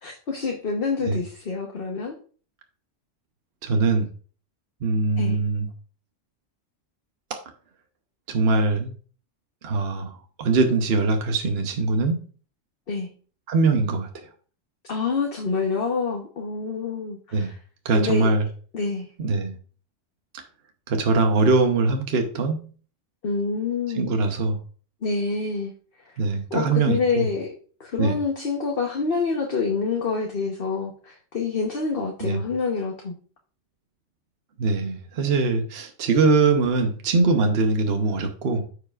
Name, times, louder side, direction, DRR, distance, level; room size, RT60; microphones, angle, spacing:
voice 1, 0.0-2.1 5.2-5.4 12.9-13.1 14.8-17.6 17.9-18.3 18.7-19.1 23.2-24.1 25.0-25.7 26.5-27.5 27.8-33.2, left 4 dB, 50° left, 1 dB, 1.2 m, -27 dB
voice 2, 3.6-4.1 4.8-5.7 7.3-7.4 8.3-8.9 9.6-12.2 13.5-14.3 17.3-17.5 17.8-18.4 19.2-19.5 20.9-22.7 24.0-24.6 26.2-27.3 28.0-28.2 32.2-32.4 34.6-38.7, right 3 dB, 55° right, 4 dB, 1.1 m, -22 dB
14.0 x 4.9 x 2.4 m, 0.41 s
omnidirectional pair, 1.3 m